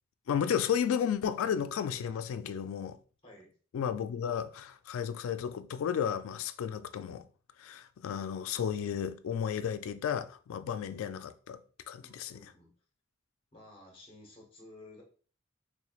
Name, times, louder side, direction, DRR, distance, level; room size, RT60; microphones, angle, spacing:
voice 1, 0.3-3.0 3.7-7.3 7.6-11.6 11.9-12.4, left 8 dB, 85° left, 0.3 m, -33 dB
voice 2, 12.0-12.7 13.5-15.0, left 2 dB, 25° left, 1.1 m, -54 dB
3.6 x 3.0 x 2.4 m
head